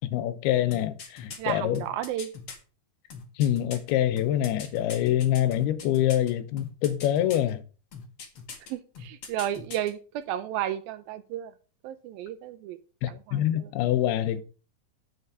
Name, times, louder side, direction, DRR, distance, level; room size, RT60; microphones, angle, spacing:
voice 1, 0.0-1.8 3.4-7.6 13.0-14.4, left 12 dB, 85° left, 2.8 m, -25 dB
sound 1, 0.7-2.6 3.1-6.3 6.6-7.5 7.9-8.7 8.9-9.9 10.2-10.3, left 5 dB, 45° left, 2.1 m, -41 dB
voice 2, 1.4-2.3 8.7-11.5 11.8-12.8 13.1-13.7, right 11 dB, 80° right, 2.2 m, -33 dB
9.5 x 8.5 x 4.7 m
omnidirectional pair, 4.5 m